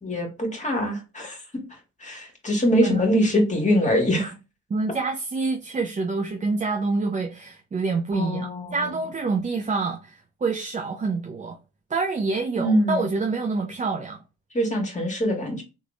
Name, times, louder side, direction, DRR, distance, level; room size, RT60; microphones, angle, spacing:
voice 1, 0.0-4.3 8.1-8.9 12.6-13.0 14.5-15.6, equal, 25° left, 1.7 m, -24 dB
voice 2, 4.7-11.6 11.9-14.2, right 4 dB, 25° right, 0.5 m, -27 dB
3.7 x 3.1 x 2.4 m
cardioid pair, 90°, 30 cm